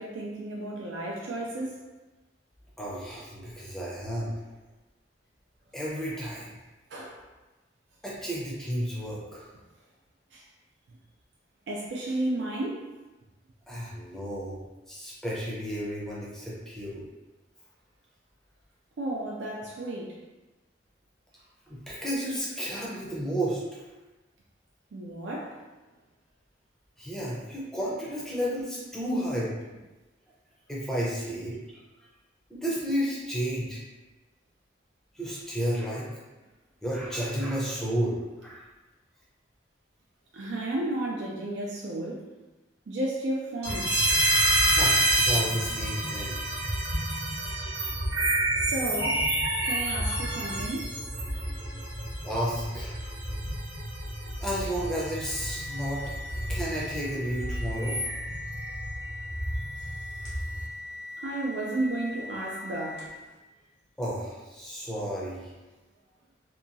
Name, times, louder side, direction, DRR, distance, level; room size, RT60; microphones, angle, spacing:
voice 1, 0.0-1.8 6.9-7.2 10.3-10.5 11.7-12.8 19.0-20.2 24.9-25.6 40.3-42.3 42.9-44.1 48.6-49.3 49.7-51.0 61.2-63.1, right 1 dB, 80° right, -2 dB, 0.4 m, -33 dB
voice 2, 2.8-4.3 5.7-6.5 8.0-9.5 13.7-14.6 14.9-17.0 21.7-23.6 27.0-29.5 30.7-31.6 32.5-33.8 35.1-36.1 36.8-38.6 44.7-46.4 52.2-53.0 54.4-56.0 56.5-58.0 64.0-65.5, equal, 5° left, -6 dB, 0.5 m, -32 dB
sound 1, 43.6-60.7, right 1 dB, 65° right, 0.8 m, -29 dB
sound 2, 54.8-63.3, left 2 dB, 85° left, 0.8 m, -41 dB
2.8 x 2.2 x 2.5 m, 1.1 s
head